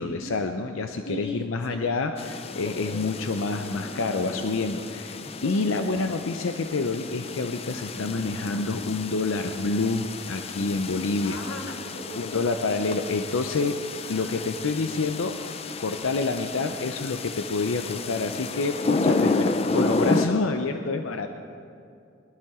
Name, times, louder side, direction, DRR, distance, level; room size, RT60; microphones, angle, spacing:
voice 1, 0.0-11.4 12.2-13.8 14.1-15.4 15.8-21.3, left 3 dB, 90° left, 6 dB, 0.6 m, -28 dB
voice 2, 1.0-1.6 2.6-3.0 5.4-5.7 11.2-12.4 14.0-14.9 19.0-19.2, left 1 dB, 55° left, 1 dB, 1.8 m, -38 dB
sound 1, 2.2-20.3, left 3 dB, 30° left, 0.4 m, -31 dB
21.0 x 12.0 x 3.7 m, 2.4 s
head